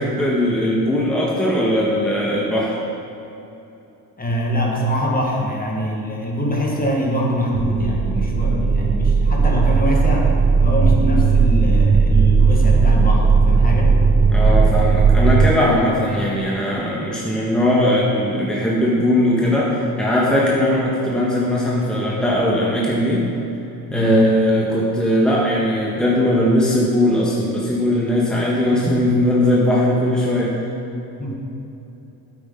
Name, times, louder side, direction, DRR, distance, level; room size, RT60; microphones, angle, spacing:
voice 1, 0.0-2.8 14.3-23.3 23.9-30.5, left 1 dB, ahead, -5 dB, 1.5 m, -19 dB
voice 2, 4.2-10.3 10.6-13.9 23.9-24.1 31.2-31.3, equal, 20° left, -2 dB, 1.8 m, -23 dB
sound 1, 7.5-15.5, right 4 dB, 25° right, 0.3 m, -16 dB
9.4 x 8.6 x 3.9 m, 2.9 s
supercardioid pair, 85°, 43 cm